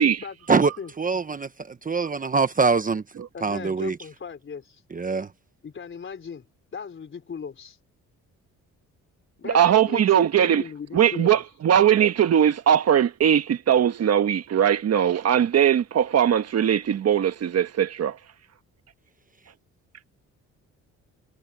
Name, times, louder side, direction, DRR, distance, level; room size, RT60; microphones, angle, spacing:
voice 1, 0.0-0.9 3.3-4.8 5.6-6.5 6.7-7.8 9.4-11.4, left 6 dB, 40° left, 4.0 m, -38 dB
voice 2, 1.0-1.5 1.8-3.0 3.4-4.0 4.9-5.3, right 4 dB, 25° right, 1.1 m, -23 dB
voice 3, 9.4-10.6 10.9-18.2, right 9 dB, 55° right, 1.4 m, -20 dB
cardioid pair, 90°, 30 cm